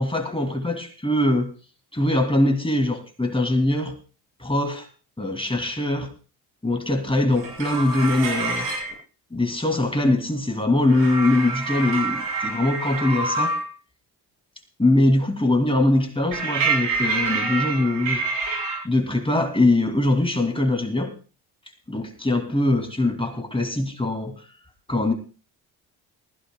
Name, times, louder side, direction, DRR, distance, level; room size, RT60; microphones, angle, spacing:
voice 1, 0.0-1.5 1.9-4.0 4.4-4.9 5.2-6.1 6.6-8.7 9.3-13.6 14.8-18.2 18.8-21.2 21.9-24.5 24.9-25.1, left 2 dB, 10° left, 4 dB, 2.5 m, -22 dB
sound 1, 7.3-8.9 10.9-13.7 16.3-18.8, right 4 dB, 75° right, 7.8 m, -26 dB
20.0 x 15.0 x 2.3 m, 0.34 s
supercardioid pair, 60°, 46 cm